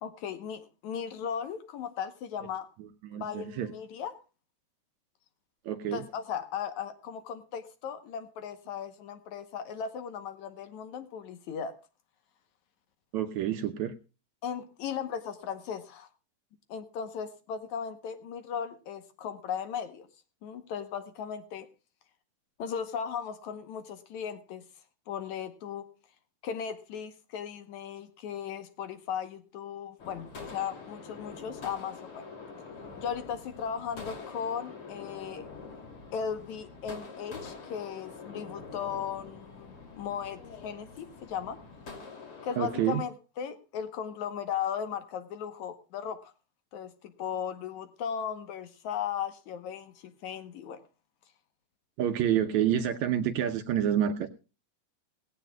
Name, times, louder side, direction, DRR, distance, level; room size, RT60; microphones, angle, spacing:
voice 1, 0.0-2.7 3.1-4.1 5.9-11.8 14.4-16.1 16.7-20.1 20.4-21.7 22.6-24.6 25.1-25.8 26.4-32.3 33.0-35.5 36.1-41.6 42.4-46.3 46.7-50.8, left 7 dB, 65° left, 10 dB, 2.2 m, -37 dB
voice 2, 2.8-3.7 5.7-6.0 13.1-13.9 42.6-43.0 52.0-54.3, right 10 dB, 70° right, 8 dB, 1.9 m, -28 dB
sound 1, 30.0-43.0, left 4 dB, 40° left, 3.5 m, -45 dB
18.5 x 16.5 x 2.3 m, 0.32 s
omnidirectional pair, 3.9 m